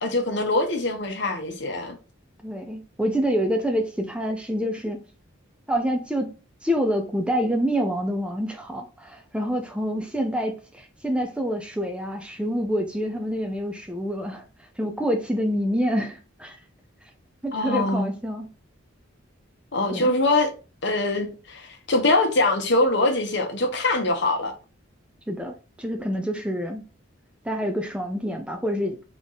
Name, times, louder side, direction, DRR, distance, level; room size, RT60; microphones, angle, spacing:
voice 1, 0.0-2.0 17.5-18.1 19.7-20.5 20.8-24.5, left 2 dB, 60° left, 1.1 m, -23 dB
voice 2, 2.4-5.0 5.7-6.3 6.6-14.4 14.8-16.6 17.4-18.5 19.9-20.1 25.3-26.8 27.4-29.0, equal, 5° right, 0.5 m, -27 dB
3.6 x 3.6 x 4.0 m
head